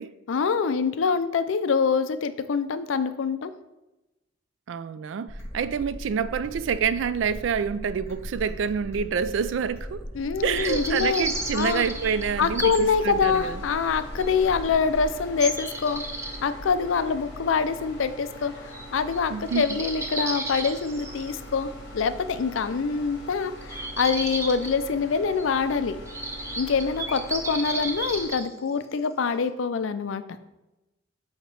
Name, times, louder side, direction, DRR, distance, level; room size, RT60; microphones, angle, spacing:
voice 1, 0.3-3.5 10.1-11.8 12.4-16.0 16.4-26.0 26.6-30.2, left 5 dB, 75° left, 0.4 m, -25 dB
voice 2, 4.7-10.0 10.4-13.6 19.3-19.7, right 6 dB, 70° right, 0.3 m, -27 dB
sound 1, 5.3-15.3, equal, 15° left, 1.3 m, -39 dB
sound 2, 10.4-28.3, equal, 60° left, 1.7 m, -42 dB
sound 3, 10.5-12.8 13.3-13.4 14.2-14.3 15.4-16.4 18.7-18.9 19.1-19.2 19.5-21.3 23.6-24.7 25.4-25.5 26.1-28.4, right 2 dB, 15° right, 0.6 m, -33 dB
8.0 x 2.9 x 4.7 m
head